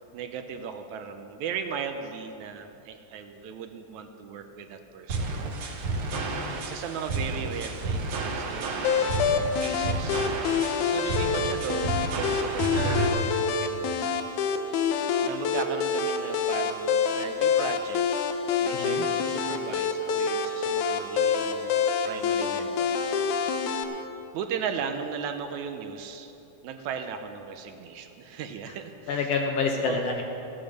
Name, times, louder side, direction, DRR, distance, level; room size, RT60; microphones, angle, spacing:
voice 1, 0.1-5.5 6.1-9.2 9.6-10.3 10.8-14.2 15.2-18.0 18.6-23.2 23.5-23.7 24.3-26.3 26.6-29.3 29.9-30.0, right 7 dB, 75° right, 6 dB, 2.0 m, -37 dB
sound 1, 5.1-13.1, right 3 dB, 60° right, 1.5 m, -31 dB
voice 2, 6.1-6.6 18.7-19.0 29.1-30.2, left 4 dB, 65° left, 2 dB, 1.8 m, -28 dB
sound 2, 8.8-23.8, left 6 dB, 90° left, 2.2 m, -27 dB
15.5 x 8.8 x 6.5 m, 2.9 s
omnidirectional pair, 3.5 m